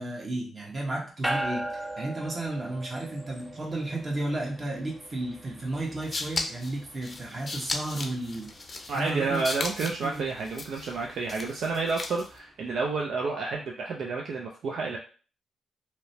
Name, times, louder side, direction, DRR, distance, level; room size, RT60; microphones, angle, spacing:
voice 1, 0.0-9.4 9.8-10.2, right 2 dB, 40° right, -1 dB, 1.0 m, -33 dB
sound 1, 1.2-12.8, right 1 dB, ahead, 0.6 m, -40 dB
sound 2, 5.8-12.4, left 3 dB, 40° left, 0.5 m, -37 dB
voice 2, 8.9-15.0, right 4 dB, 70° right, 0 dB, 0.4 m, -30 dB
2.8 x 2.1 x 2.7 m, 0.38 s
supercardioid pair, 55°, 0 cm